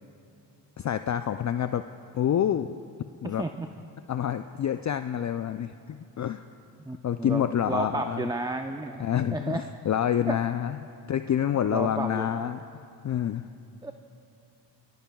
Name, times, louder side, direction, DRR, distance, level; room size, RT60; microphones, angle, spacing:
voice 1, 0.8-1.8 2.1-2.7 3.2-3.5 4.1-6.4 7.0-8.3 9.0-10.8 11.1-12.6 13.0-13.5, left 9 dB, 40° left, 10 dB, 0.5 m, -27 dB
voice 2, 3.2-3.7 6.8-9.0 9.3-9.6 10.3-10.4 11.7-12.5 13.8-13.9, right 2 dB, 10° right, 6 dB, 0.6 m, -32 dB
28.0 x 15.5 x 2.3 m, 2.7 s
supercardioid pair, 50°, 46 cm